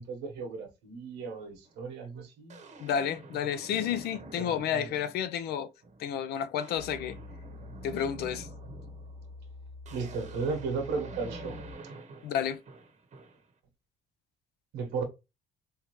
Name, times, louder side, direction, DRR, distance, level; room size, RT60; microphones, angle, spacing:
voice 1, 0.0-2.6 4.4-4.9 9.9-11.6 11.8-11.9 14.7-15.0, right 4 dB, 90° right, 1.1 m, -35 dB
sound 1, 1.6-1.8 2.5-5.4 5.8-6.1 6.4-13.5, right 3 dB, 45° right, 0.9 m, -48 dB
voice 2, 2.8-5.7 6.0-7.2 7.8-8.5 12.2-12.6, left 9 dB, 75° left, 0.5 m, -31 dB
sound 2, 6.8-11.7, left 3 dB, 10° right, 0.8 m, -46 dB
3.6 x 2.8 x 3.0 m
cardioid pair, 110°, 17 cm